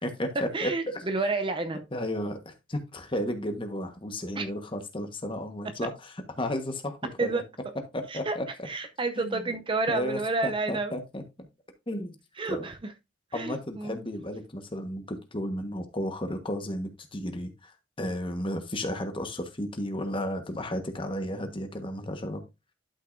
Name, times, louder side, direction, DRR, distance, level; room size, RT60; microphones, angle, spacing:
voice 1, 0.0-0.7 1.9-7.4 7.9-8.7 9.2-9.4 9.9-11.5 11.9-12.2 12.5-12.7 13.3-17.7 18.0-22.4, left 1 dB, 25° left, 1.3 m, -33 dB
voice 2, 0.5-1.8 4.4-4.5 7.2-7.4 8.1-11.0 12.4-12.9 13.3-14.0, right 3 dB, 25° right, 0.6 m, -30 dB
11.5 x 5.7 x 2.6 m
head